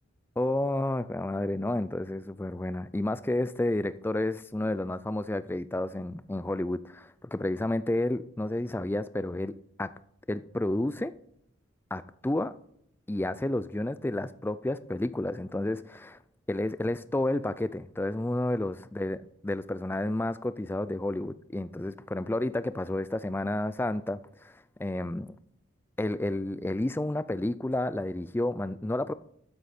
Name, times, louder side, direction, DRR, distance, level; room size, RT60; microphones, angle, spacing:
voice 1, 0.4-9.9 10.3-11.1 11.9-12.6 13.1-16.2 16.5-19.2 19.4-25.4 26.0-29.1, left 1 dB, 10° left, 0.3 m, -31 dB
12.5 x 8.2 x 4.3 m
head